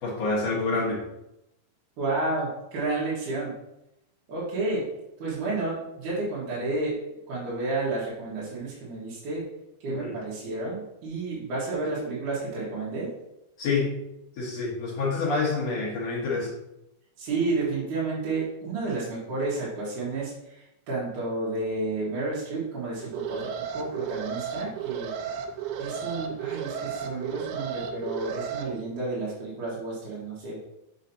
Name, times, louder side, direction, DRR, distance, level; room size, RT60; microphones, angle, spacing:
voice 1, 0.0-1.0 9.9-10.1 13.6-13.9 14.4-16.5, left 3 dB, 85° left, -7 dB, 1.4 m, -27 dB
voice 2, 2.0-3.5 4.3-4.9 5.2-7.0 7.3-9.5 9.8-13.1 17.2-25.1 25.8-30.6, right 3 dB, 55° right, -8 dB, 2.4 m, -31 dB
Alarm, 23.0-28.6, right 7 dB, 85° right, 2.2 m, -34 dB
6.6 x 6.2 x 2.8 m, 0.88 s
omnidirectional pair, 5.2 m